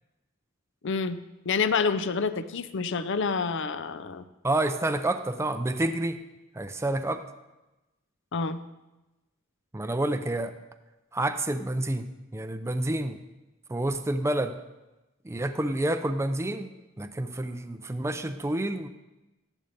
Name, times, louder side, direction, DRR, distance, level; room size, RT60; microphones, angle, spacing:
voice 1, 0.8-1.2 1.5-4.2 8.3-8.6, left 5 dB, 60° left, 12 dB, 0.6 m, -28 dB
voice 2, 4.4-6.2 6.6-7.2 9.7-10.6 11.1-12.1 12.3-13.2 13.7-14.6 15.2-16.7 17.0-18.9, right 1 dB, 15° right, 9 dB, 0.5 m, -28 dB
14.0 x 11.0 x 4.1 m, 1.0 s
head